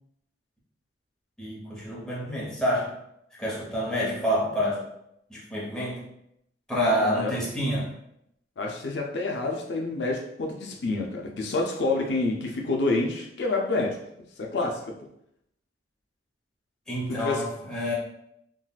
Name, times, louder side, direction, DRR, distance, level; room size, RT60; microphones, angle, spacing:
voice 1, 1.4-2.9 3.4-4.8 5.3-6.0 6.7-7.9 16.9-17.9, equal, 5° left, -7 dB, 0.9 m, -28 dB
voice 2, 7.0-7.3 8.6-14.0 14.4-15.0 17.1-17.4, left 2 dB, 70° left, 1 dB, 0.4 m, -28 dB
3.6 x 2.3 x 2.3 m, 0.76 s
head